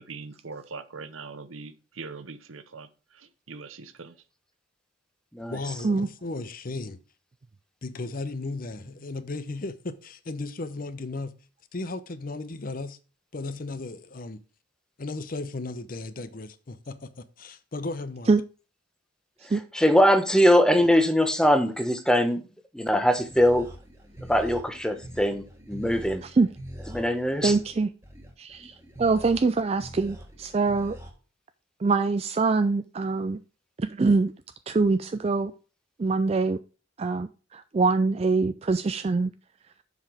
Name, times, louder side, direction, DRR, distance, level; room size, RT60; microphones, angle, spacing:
voice 1, 0.0-4.1, right 4 dB, 85° right, 0.9 m, -42 dB
voice 2, 5.5-7.0 7.8-11.3 11.7-13.0 13.3-14.4 15.0-18.3, left 2 dB, 45° left, 0.7 m, -35 dB
voice 3, 19.4-22.4 22.7-23.7 24.3-26.2 26.9-27.6, equal, 5° left, 0.9 m, -22 dB
sound 1, 22.9-31.1, equal, 15° right, 1.6 m, -44 dB
voice 4, 27.4-27.9 28.4-31.0 31.8-33.4 33.8-34.3 34.7-35.5 36.0-36.6 37.0-39.3, right 3 dB, 30° right, 0.3 m, -24 dB
7.2 x 5.9 x 4.9 m
head